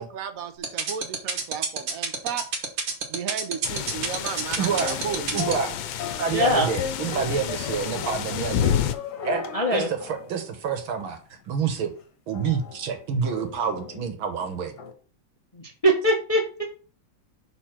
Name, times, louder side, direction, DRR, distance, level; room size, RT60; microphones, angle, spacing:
voice 1, 0.0-2.5 3.1-5.6, right 7 dB, 55° right, 9 dB, 1.1 m, -34 dB
sound 1, 0.6-5.5, right 5 dB, 70° right, 2.1 m, -27 dB
sound 2, 3.6-8.9, left 10 dB, 80° left, 1.5 m, -30 dB
voice 2, 4.6-5.0 5.3-5.7 6.2-8.7 9.2-9.4 9.7-11.2 11.5-11.9 12.3-14.7, right 6 dB, 90° right, 7 dB, 2.1 m, -28 dB
sound 3, 4.8-11.2 11.7-11.8 12.3-14.9, left 6 dB, 55° left, 1.6 m, -37 dB
voice 3, 6.3-6.7 9.5-9.9 16.0-16.6, left 1 dB, 30° left, 1 dB, 0.7 m, -22 dB
6.6 x 4.2 x 5.9 m, 0.39 s
omnidirectional pair, 2.2 m